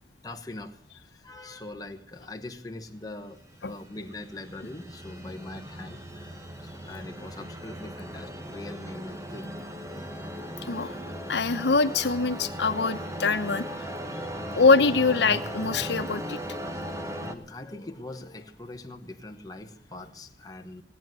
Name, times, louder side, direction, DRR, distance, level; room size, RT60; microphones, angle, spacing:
voice 1, 0.2-9.5 16.7-20.8, left 2 dB, 20° left, 4 dB, 1.1 m, -42 dB
sound 1, 3.2-17.3, equal, 15° right, 1.1 m, -38 dB
voice 2, 11.3-13.7 14.1-14.2 14.6-16.4, left 4 dB, 80° left, 8 dB, 1.0 m, -23 dB
17.5 x 9.4 x 7.6 m, 0.64 s
head